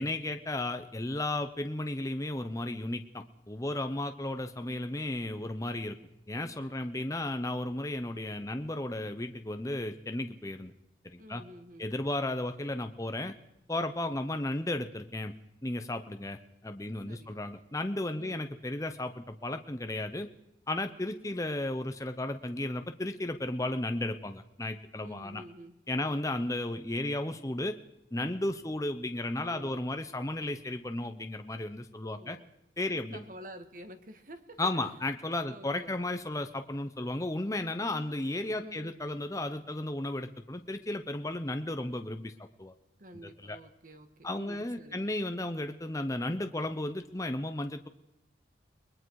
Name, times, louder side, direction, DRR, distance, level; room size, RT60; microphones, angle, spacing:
voice 1, 0.0-6.0 6.3-10.7 11.0-11.4 11.8-13.4 13.7-15.3 15.6-20.3 20.7-25.4 25.9-27.8 28.1-32.4 32.8-33.2 34.6-42.3 42.6-42.7 43.2-43.6 44.2-47.9, left 1 dB, 15° left, 7 dB, 0.8 m, -34 dB
voice 2, 6.6-7.3 11.2-11.9 17.1-17.4 18.1-18.4 25.0-26.3 29.5-29.8 32.0-32.5 32.9-34.9 35.5-35.9 38.5-39.0 43.0-45.1, equal, 45° right, 9 dB, 1.8 m, -50 dB
30.0 x 21.0 x 4.8 m, 0.86 s
head